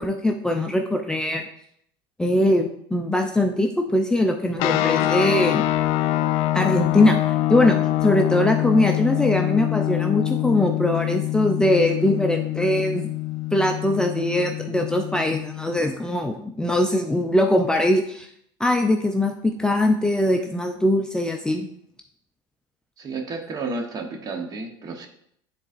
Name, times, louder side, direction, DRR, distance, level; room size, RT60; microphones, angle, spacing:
voice 1, 0.0-1.4 2.2-5.7 6.5-7.2 7.5-13.1 13.5-18.3 18.6-21.7, left 1 dB, 5° left, 3 dB, 0.4 m, -21 dB
sound 1, 4.6-15.8, left 15 dB, 65° left, 0.4 m, -25 dB
voice 2, 23.0-25.1, right 3 dB, 35° right, 4 dB, 1.0 m, -31 dB
9.7 x 3.9 x 2.5 m, 0.69 s
supercardioid pair, 110°, 11 cm